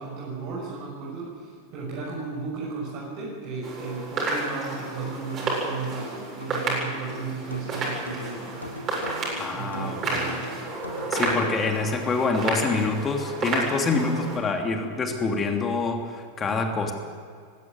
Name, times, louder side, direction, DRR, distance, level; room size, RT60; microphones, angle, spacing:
voice 1, 0.0-8.7 9.5-10.5, right 4 dB, 45° right, -5 dB, 6.2 m, -35 dB
sound 1, 3.6-14.4, right 2 dB, 30° right, 7.8 m, -31 dB
sound 2, 4.9-11.5, left 2 dB, 80° left, 2.1 m, -41 dB
voice 2, 9.4-10.4 11.1-16.9, left 4 dB, 20° left, 4 dB, 2.9 m, -26 dB
20.0 x 16.0 x 9.4 m, 2.1 s
figure-of-eight pair, 90°, 0 cm